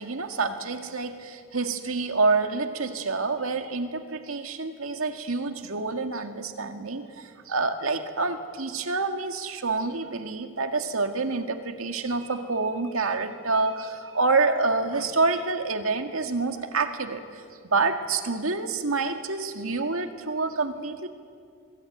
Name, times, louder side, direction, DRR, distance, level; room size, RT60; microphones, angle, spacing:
voice 1, 0.0-21.1, right 3 dB, 85° right, 6 dB, 1.9 m, -27 dB
25.5 x 21.5 x 9.0 m, 2.2 s
head